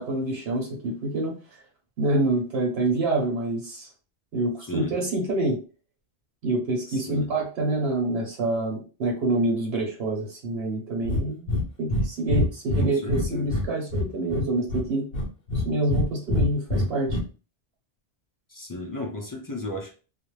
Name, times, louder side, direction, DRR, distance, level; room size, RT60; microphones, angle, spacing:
voice 1, 0.0-1.3 2.0-3.9 4.3-5.6 6.4-15.0 15.5-17.2, right 2 dB, 80° right, -1 dB, 1.0 m, -26 dB
voice 2, 6.9-7.3 12.8-13.5 18.5-19.9, left 2 dB, 35° left, 0 dB, 0.3 m, -34 dB
Breathing, 11.0-11.2 11.5-11.6 11.9-12.0 12.3-13.7 13.9-14.8 15.1-16.0 16.3-17.2, left 1 dB, 50° left, 0.7 m, -24 dB
2.4 x 2.0 x 3.0 m, 0.35 s
omnidirectional pair, 1.1 m